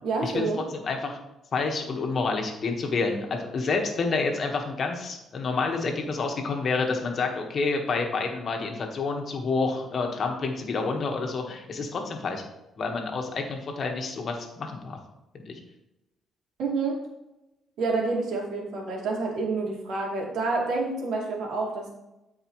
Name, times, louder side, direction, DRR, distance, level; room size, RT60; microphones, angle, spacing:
voice 1, 0.0-0.6 16.6-17.0 17.8-21.9, right 3 dB, 80° right, -2 dB, 2.5 m, -28 dB
voice 2, 0.7-1.2 1.5-12.4 12.8-15.0 15.3-15.6, left 4 dB, 50° left, 3 dB, 1.5 m, -28 dB
13.0 x 4.7 x 3.2 m, 0.94 s
cardioid pair, 90°, 0 cm